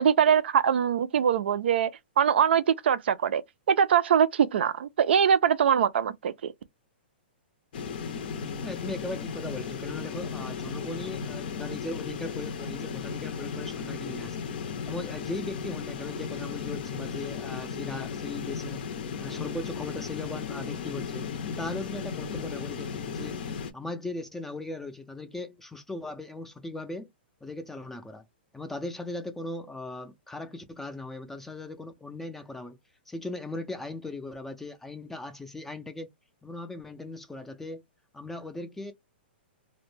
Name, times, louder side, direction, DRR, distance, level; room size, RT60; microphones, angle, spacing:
voice 1, 0.0-1.9 2.2-3.4 3.7-6.5, right 8 dB, 75° right, 0.4 m, -23 dB
sound 1, 7.7-23.7, left 6 dB, 60° left, 0.5 m, -35 dB
voice 2, 8.6-14.5 14.8-18.9 19.2-21.2 21.6-23.4 23.7-27.1 27.4-28.2 28.5-32.8 33.1-36.1 36.4-37.8 38.1-38.9, left 2 dB, 5° left, 0.3 m, -38 dB
2.1 x 2.1 x 3.1 m
hypercardioid pair, 150°, 6 cm